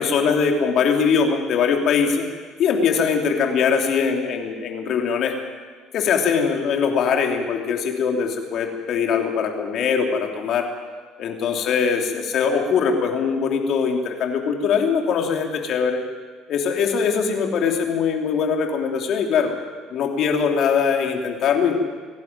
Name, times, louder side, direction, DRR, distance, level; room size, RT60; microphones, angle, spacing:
voice 1, 0.0-2.2 2.6-5.3 5.9-10.6 11.2-16.0 16.5-19.5 19.9-21.8, left 6 dB, 60° left, 2 dB, 3.3 m, -21 dB
24.5 x 11.5 x 9.3 m, 1.5 s
hypercardioid pair, 60°, 0 cm